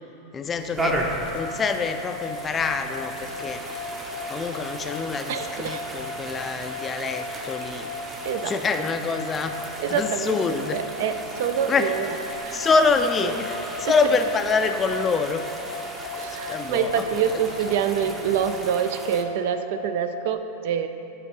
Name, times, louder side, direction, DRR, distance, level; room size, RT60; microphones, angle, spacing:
voice 1, 0.3-1.0 1.3-3.6 4.3-7.9 8.4-10.8 11.7-11.9 12.5-15.5 16.3-17.1, left 4 dB, 25° left, 7 dB, 0.3 m, -26 dB
sound 1, 0.6-18.7, left 3 dB, 85° left, 0.7 m, -46 dB
sound 2, 0.8-19.2, right 1 dB, 15° right, 0.7 m, -36 dB
sound 3, 0.8-20.3, left 2 dB, 30° right, 1.2 m, -37 dB
voice 2, 5.3-5.8 8.2-8.6 9.8-12.2 12.4-12.7 13.2-13.3 13.8-14.0 16.1-20.9, right 8 dB, 65° right, 9 dB, 0.4 m, -26 dB
7.4 x 3.2 x 5.3 m, 2.9 s
hypercardioid pair, 115°, 0 cm